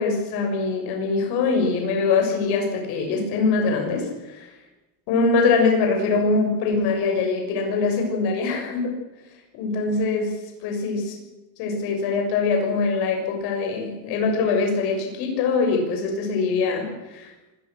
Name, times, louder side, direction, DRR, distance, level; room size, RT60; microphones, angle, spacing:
voice 1, 0.0-4.5 5.1-8.9 9.6-10.3 10.6-11.2 11.6-17.3, left 4 dB, 65° left, 3 dB, 6.9 m, -23 dB
25.0 x 21.0 x 6.6 m, 1.1 s
cardioid pair, 175°, 41 cm